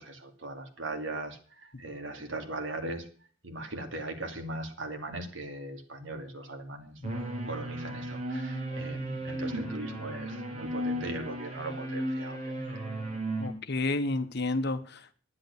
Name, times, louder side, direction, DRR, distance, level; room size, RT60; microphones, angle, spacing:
voice 1, 0.0-3.1 3.4-7.0 7.4-12.7, right 2 dB, 70° right, 5 dB, 2.5 m, -39 dB
sound 1, 7.0-13.5, right 1 dB, 35° right, 3.8 m, -35 dB
voice 2, 13.4-15.1, left 2 dB, 55° left, 11 dB, 1.2 m, -31 dB
11.0 x 9.5 x 6.6 m, 0.42 s
head